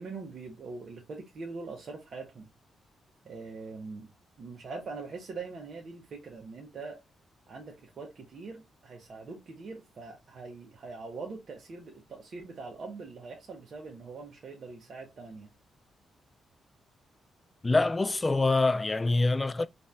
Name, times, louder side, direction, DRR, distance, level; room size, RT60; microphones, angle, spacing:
voice 1, 0.0-2.5 3.2-4.1 4.4-7.0 7.5-15.5, right 4 dB, 55° right, 1.0 m, -42 dB
voice 2, 17.6-19.7, left 3 dB, 25° left, 0.3 m, -25 dB
4.0 x 2.5 x 3.3 m
cardioid pair, 75°, 0 cm